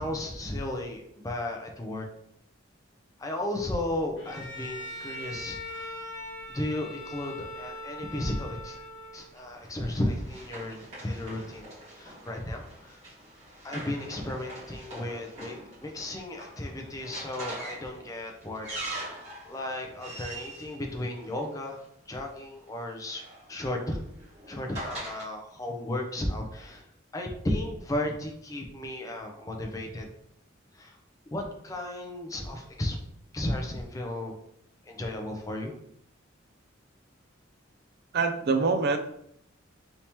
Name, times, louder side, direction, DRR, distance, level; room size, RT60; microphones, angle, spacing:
voice 1, 0.0-2.0 3.2-6.0 6.5-8.8 9.1-13.0 13.6-18.7 19.4-21.8 22.1-23.2 23.5-24.0 24.5-26.8 27.1-30.1 30.7-31.0 31.3-33.0 33.3-34.3 34.9-35.7, left 1 dB, 15° left, 2 dB, 0.4 m, -34 dB
Bowed string instrument, 4.2-9.4, left 1 dB, 70° left, 1.1 m, -41 dB
Run, 9.2-21.8 22.8-25.3, right 1 dB, 30° right, 1.4 m, -43 dB
voice 2, 38.1-39.0, right 4 dB, 50° right, 7 dB, 0.4 m, -24 dB
3.4 x 2.8 x 2.9 m, 0.73 s
head